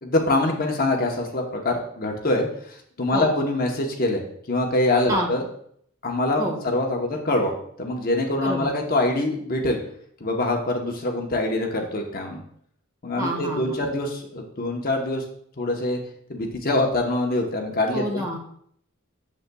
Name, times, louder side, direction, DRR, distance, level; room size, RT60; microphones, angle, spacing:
voice 1, 0.0-5.4 6.0-7.5 7.8-9.8 10.2-12.4 13.0-15.2 15.6-16.0 16.3-18.2, left 2 dB, 45° left, 2 dB, 0.9 m, -24 dB
voice 2, 13.2-13.8 17.9-18.4, equal, 20° right, 0 dB, 1.4 m, -27 dB
8.0 x 7.2 x 2.3 m, 0.66 s
head